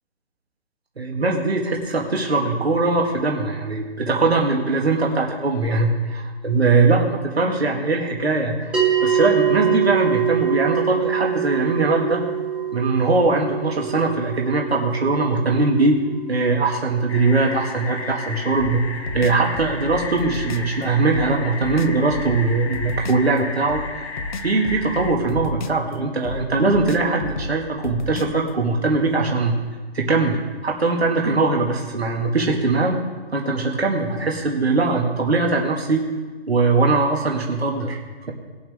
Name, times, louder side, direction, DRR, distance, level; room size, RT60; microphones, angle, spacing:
voice 1, 1.0-12.2 12.7-16.0 16.3-18.8 19.1-24.0 24.4-29.6 29.9-33.0 33.3-36.0 36.5-38.0, right 3 dB, 75° right, 0 dB, 2.1 m, -21 dB
sound 1, 8.7-19.3, right 8 dB, 5° right, 1.1 m, -25 dB
sound 2, 17.1-25.1, left 4 dB, 90° left, 1.8 m, -34 dB
sound 3, 18.6-20.7 21.1-23.3 23.7-25.9 26.2-28.5, left 2 dB, 45° left, 0.9 m, -32 dB
19.5 x 7.8 x 3.6 m, 1.4 s
figure-of-eight pair, 145°, 32 cm